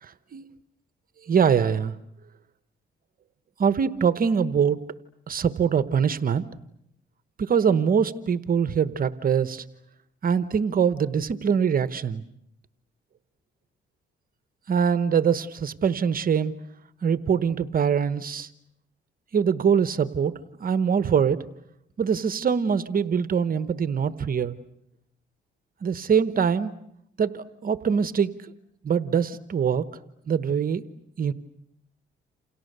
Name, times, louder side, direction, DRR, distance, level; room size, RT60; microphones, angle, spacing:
voice 1, 0.0-0.4 1.2-1.9 3.6-4.8 5.3-6.4 7.4-9.6 10.2-12.2 14.7-16.5 17.0-18.5 19.3-20.3 20.6-21.4 22.0-24.6 25.8-26.7 27.2-28.5 28.8-29.9 30.3-30.8 31.2-31.3, right 7 dB, 45° right, 13 dB, 1.1 m, -23 dB
29.0 x 28.5 x 6.8 m, 0.75 s
cardioid pair, 90°, 20 cm